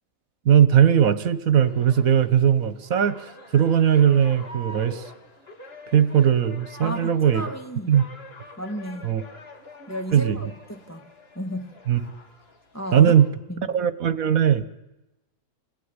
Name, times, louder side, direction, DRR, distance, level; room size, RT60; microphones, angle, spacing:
voice 1, 0.4-5.0 5.9-7.4 7.9-8.0 9.0-9.2 10.1-10.4 11.9-12.0 12.9-13.3 13.7-14.6, right 9 dB, 75° right, 1.5 m, -19 dB
sound 1, 1.7-13.3, left 1 dB, 45° left, 3.0 m, -45 dB
voice 2, 6.8-8.0 8.6-9.2 9.9-11.1 11.3-11.8 12.7-13.1 13.5-13.8, equal, 10° left, 1.6 m, -34 dB
26.5 x 19.0 x 9.7 m
omnidirectional pair, 1.5 m